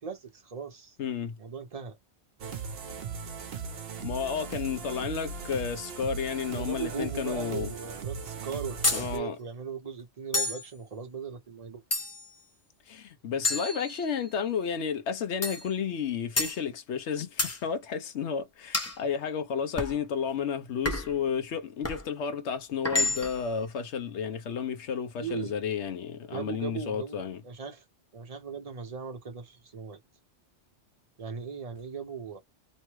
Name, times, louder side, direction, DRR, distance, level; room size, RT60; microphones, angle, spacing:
voice 1, 0.0-1.0 1.4-2.0 6.5-11.8 25.2-25.6 26.3-27.8 28.1-30.0 31.2-32.4, right 6 dB, 35° right, 0.8 m, -38 dB
voice 2, 1.0-1.4 4.0-7.7 8.9-9.4 12.9-27.4, left 7 dB, 75° left, 1.0 m, -32 dB
sound 1, 2.4-9.2, right 5 dB, 60° right, 0.9 m, -38 dB
sound 2, 8.8-9.1 10.3-10.7 11.9-12.4 13.4-14.3 15.4-15.7 16.4-16.6 17.4-17.6 18.7-19.0 19.8-20.0 20.8-21.2 21.8-22.1 22.8-23.4, left 2 dB, 25° left, 0.4 m, -29 dB
3.1 x 2.1 x 3.0 m
omnidirectional pair, 1.2 m